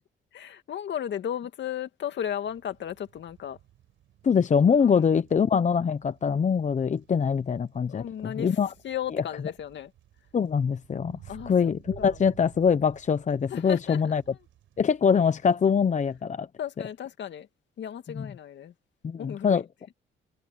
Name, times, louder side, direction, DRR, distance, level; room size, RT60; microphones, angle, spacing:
voice 1, 0.3-3.6 4.8-5.1 7.9-8.6 8.8-9.9 11.3-12.2 13.5-14.2 16.6-17.5 17.8-18.7 19.2-19.6, left 9 dB, 65° left, 2.3 m, -35 dB
sound 1, 2.4-16.2, right 12 dB, 80° right, 6.1 m, -55 dB
voice 2, 4.2-8.7 10.3-11.2 11.5-14.2 14.8-16.5 18.1-18.3 19.0-19.6, left 6 dB, 35° left, 0.9 m, -23 dB
cardioid pair, 90°, 20 cm